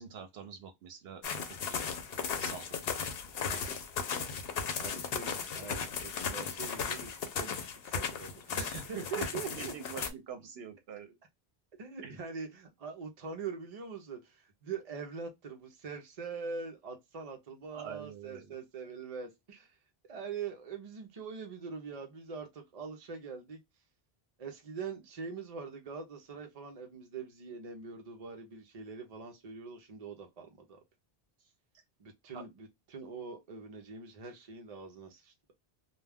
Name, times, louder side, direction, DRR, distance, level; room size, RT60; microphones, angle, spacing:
voice 1, 0.0-1.8 2.2-2.8 3.5-3.8 8.5-11.2 12.0-12.2 17.7-18.5 32.3-32.4, right 7 dB, 80° right, 0.8 m, -45 dB
sound 1, 1.2-10.1, left 6 dB, 70° left, 0.8 m, -36 dB
voice 2, 4.8-9.7 11.8-19.8 20.1-23.6 24.4-30.8 32.0-35.3, right 5 dB, 45° right, 0.6 m, -43 dB
2.2 x 2.2 x 3.3 m
omnidirectional pair, 1.0 m